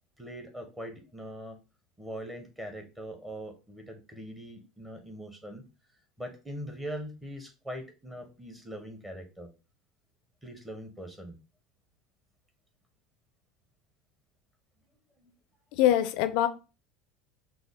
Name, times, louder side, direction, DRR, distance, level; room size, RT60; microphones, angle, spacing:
voice 1, 0.2-1.6 2.0-5.6 6.2-9.5 10.4-11.4 15.2-15.3, equal, 15° right, 4 dB, 1.3 m, -41 dB
voice 2, 15.7-16.5, left 12 dB, 65° left, 11 dB, 0.5 m, -23 dB
5.9 x 2.0 x 3.7 m, 0.31 s
hypercardioid pair, 85°, 0 cm